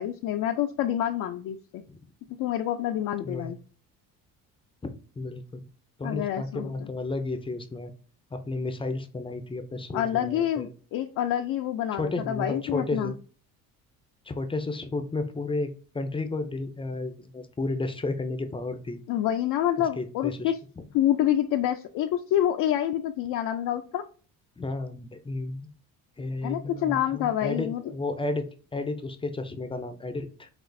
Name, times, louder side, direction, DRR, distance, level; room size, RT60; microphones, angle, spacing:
voice 1, 0.0-1.8 2.4-3.6 6.0-6.9 9.9-13.1 19.1-20.6 20.9-24.0 26.4-27.8, left 11 dB, 65° left, 4 dB, 0.5 m, -27 dB
voice 2, 4.8-5.6 6.0-7.9 8.3-10.7 11.9-13.1 14.2-19.0 20.0-20.8 24.6-25.7 26.2-30.5, left 2 dB, 15° left, 8 dB, 0.5 m, -32 dB
5.9 x 2.4 x 2.6 m, 0.41 s
cardioid pair, 110°, 35 cm